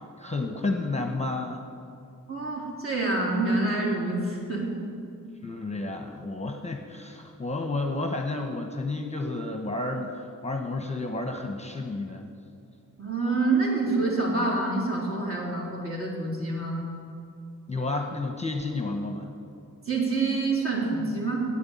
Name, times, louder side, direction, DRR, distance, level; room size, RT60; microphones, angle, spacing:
voice 1, 0.2-1.7 5.4-12.3 17.7-19.3, left 2 dB, 20° left, 3 dB, 1.0 m, -31 dB
voice 2, 2.3-4.7 13.0-16.8 19.9-21.5, right 3 dB, 45° right, -4 dB, 3.6 m, -27 dB
9.6 x 8.7 x 8.6 m, 2.4 s
wide cardioid pair, 85°, 32 cm